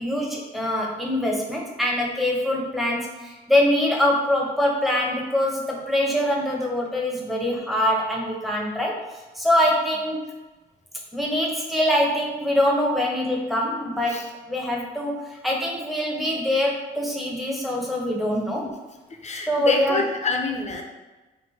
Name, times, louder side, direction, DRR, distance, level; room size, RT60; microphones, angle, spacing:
voice 1, 0.0-9.0 9.3-10.2 11.1-18.7 19.5-20.0, left 1 dB, ahead, -2 dB, 0.9 m, -24 dB
voice 2, 19.2-20.8, left 3 dB, 35° left, 3 dB, 0.6 m, -26 dB
3.2 x 2.6 x 4.3 m, 1.2 s
cardioid pair, 90°, 20 cm